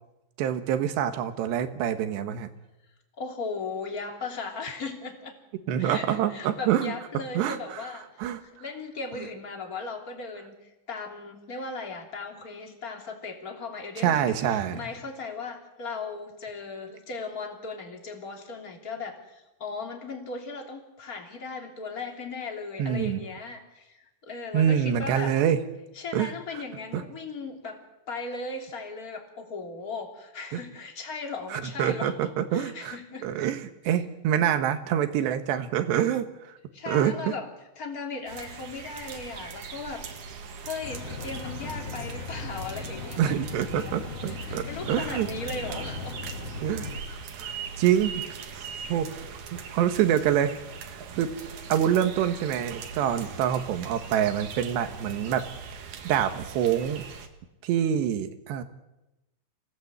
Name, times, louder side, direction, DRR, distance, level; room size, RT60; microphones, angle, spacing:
voice 1, 0.4-2.5 5.7-6.9 7.4-7.8 8.2-8.4 14.0-14.9 22.8-23.2 24.5-25.6 26.1-26.3 26.9-27.0 30.5-30.6 31.5-33.0 33.2-36.6 36.9-37.1 43.2-45.3 46.6-48.3 48.6-48.7 48.9-49.1 49.5-51.3 51.7-55.5 56.1-57.0 57.6-58.6, right 10 dB, 75° right, 10 dB, 3.5 m, -26 dB
voice 2, 3.2-5.3 5.8-25.3 25.9-33.3 36.7-37.5 37.8-40.0 40.6-43.4 44.3-46.2, left 4 dB, 25° left, 3 dB, 2.7 m, -37 dB
sound 1, 38.3-57.3, right 5 dB, 55° right, 2.6 m, -40 dB
sound 2, 40.8-47.0, left 3 dB, 50° left, 3.9 m, -38 dB
27.5 x 17.0 x 8.1 m, 0.97 s
omnidirectional pair, 5.1 m